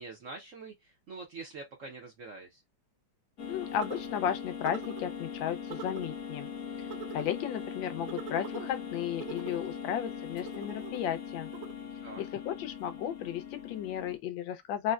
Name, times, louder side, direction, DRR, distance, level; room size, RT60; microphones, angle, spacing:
voice 1, 0.0-2.6 12.0-12.2, right 3 dB, 65° right, 0.7 m, -45 dB
sound 1, 3.4-14.2, left 7 dB, 50° left, 1.1 m, -41 dB
voice 2, 3.5-6.5 6.8-11.5 12.2-14.9, left 9 dB, 75° left, 1.3 m, -34 dB
sound 2, 3.8-4.2 4.6-5.0 5.7-6.1 6.9-7.4 8.1-8.7 9.2-9.7 10.4-11.1 11.5-11.7, right 8 dB, 85° right, 1.4 m, -43 dB
4.0 x 2.1 x 2.2 m
omnidirectional pair, 2.2 m